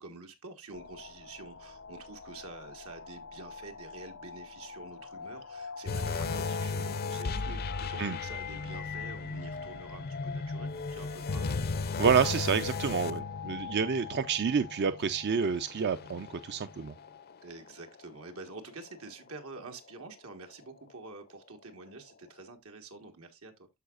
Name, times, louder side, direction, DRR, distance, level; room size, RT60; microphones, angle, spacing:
voice 1, 0.0-11.7 17.4-23.7, right 3 dB, 85° right, 1.7 m, -47 dB
sound 1, 0.7-11.9, left 4 dB, 80° left, 1.0 m, -47 dB
sound 2, 5.9-17.3 17.7-17.9 18.5-18.6, left 4 dB, 45° left, 0.5 m, -36 dB
voice 2, 12.0-16.9, right 6 dB, 50° right, 0.4 m, -28 dB
13.5 x 4.8 x 2.4 m
head